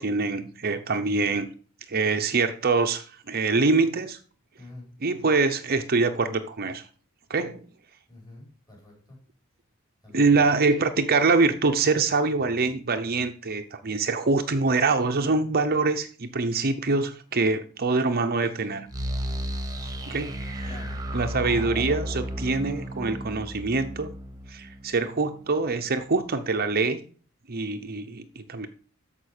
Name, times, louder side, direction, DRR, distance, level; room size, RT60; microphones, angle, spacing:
voice 1, 0.0-1.5 1.9-4.2 5.0-6.9 7.3-7.6 10.1-18.9 20.1-20.7 21.1-24.1 24.5-27.0 27.5-28.7, right 3 dB, 45° right, 7 dB, 0.8 m, -24 dB
voice 2, 4.6-4.9 8.1-9.2 10.0-10.5 20.6-21.0, left 2 dB, 20° left, -2 dB, 5.5 m, -46 dB
sound 1, 18.9-25.7, equal, 15° right, 1.4 m, -33 dB
13.5 x 5.3 x 6.6 m, 0.41 s
head